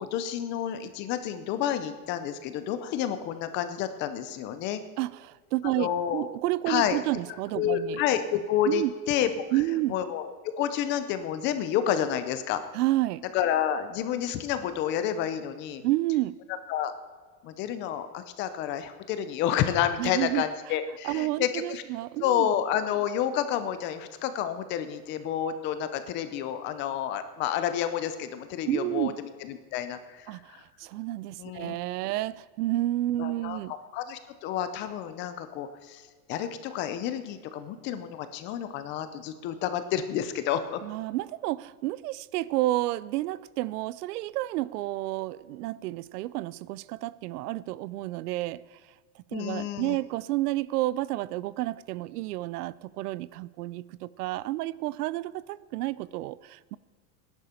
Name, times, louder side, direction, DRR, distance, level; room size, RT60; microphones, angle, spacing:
voice 1, 0.0-4.8 5.8-6.3 6.7-7.0 7.5-9.3 9.9-12.6 13.3-15.8 16.7-16.9 17.4-21.8 22.2-30.6 31.4-32.0 33.2-36.0 36.3-40.8 49.3-50.0, left 10 dB, 25° left, 10 dB, 0.5 m, -30 dB
voice 2, 5.0-8.0 8.7-8.9 9.5-10.0 12.7-13.2 15.8-16.3 20.0-20.4 21.0-22.5 28.7-29.2 30.3-33.7 40.8-48.6 49.2-56.8, right 17 dB, 85° right, 20 dB, 0.6 m, -30 dB
18.0 x 10.5 x 4.4 m, 1.5 s
supercardioid pair, 165°, 45 cm